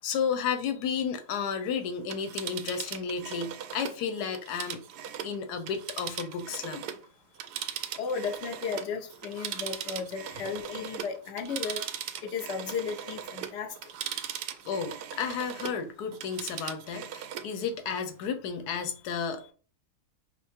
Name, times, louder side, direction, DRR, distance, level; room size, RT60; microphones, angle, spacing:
voice 1, 0.0-4.8 5.2-6.9 14.7-19.5, left 6 dB, 85° left, 1.2 m, -32 dB
Telephone, 2.0-7.0 7.3-15.8 16.1-17.5 17.9-18.0, right 9 dB, 85° right, 1.1 m, -39 dB
voice 2, 8.0-11.8 12.2-13.7, left 5 dB, 55° left, 0.9 m, -34 dB
5.6 x 2.0 x 4.4 m
omnidirectional pair, 1.7 m